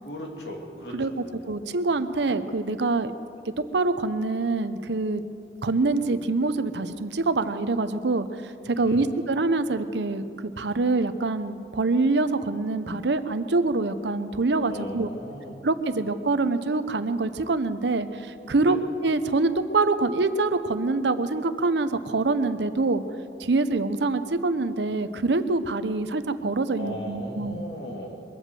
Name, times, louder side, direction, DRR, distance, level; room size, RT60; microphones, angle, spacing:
voice 1, 0.0-1.4 8.7-9.0 14.7-15.6 18.6-18.8 26.8-28.2, equal, 75° left, 0 dB, 2.6 m, -37 dB
voice 2, 1.5-3.1 3.7-5.2 5.6-15.1 15.6-18.8 19.0-23.0 23.4-27.6, right 3 dB, 80° right, 11 dB, 0.8 m, -25 dB
22.5 x 8.2 x 7.7 m, 2.6 s
head